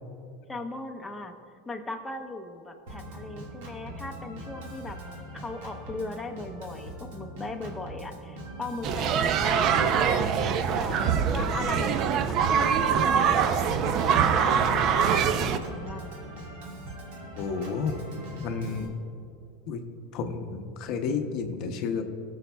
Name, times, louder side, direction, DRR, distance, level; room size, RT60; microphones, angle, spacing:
voice 1, 0.5-1.3 1.7-5.0 5.3-10.3 10.8-13.3 14.0-16.1, left 2 dB, 10° left, 3 dB, 0.7 m, -38 dB
Organ, 2.9-18.9, right 1 dB, 80° right, 1.8 m, -42 dB
sound 1, 8.8-15.6, right 7 dB, 45° right, 0.5 m, -24 dB
voice 2, 17.4-18.0 18.4-18.9 19.7-19.8 20.1-22.0, left 5 dB, 55° left, 6 dB, 0.6 m, -31 dB
18.5 x 6.3 x 2.3 m, 2.7 s
supercardioid pair, 120°, 0 cm